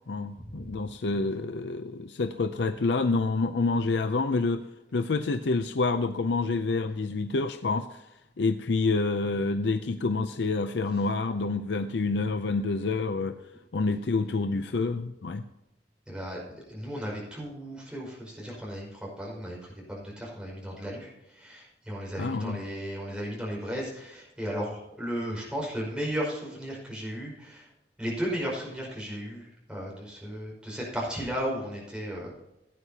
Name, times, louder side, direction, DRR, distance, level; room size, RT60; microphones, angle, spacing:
voice 1, 0.1-4.7 4.9-8.1 8.4-13.4 13.7-15.4 22.2-22.6, left 3 dB, 75° left, 9 dB, 0.6 m, -28 dB
voice 2, 16.1-27.7 28.0-32.4, equal, 5° right, -4 dB, 5.1 m, -35 dB
17.0 x 10.0 x 2.8 m, 0.92 s
head